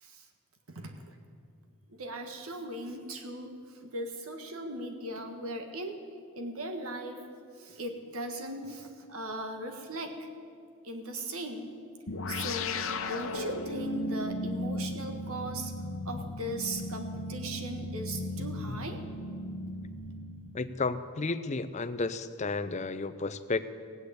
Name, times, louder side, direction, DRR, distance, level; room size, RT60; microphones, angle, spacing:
voice 1, 0.7-1.1 1.9-6.0 6.3-7.2 7.6-10.1 10.8-11.7 12.3-15.7 16.0-19.0, right 1 dB, 70° right, 5 dB, 1.6 m, -38 dB
sound 1, 12.1-20.9, left 2 dB, 60° left, 0.9 m, -36 dB
voice 2, 20.5-23.6, left 3 dB, 30° left, 11 dB, 0.5 m, -32 dB
17.0 x 8.2 x 8.3 m, 2.2 s
head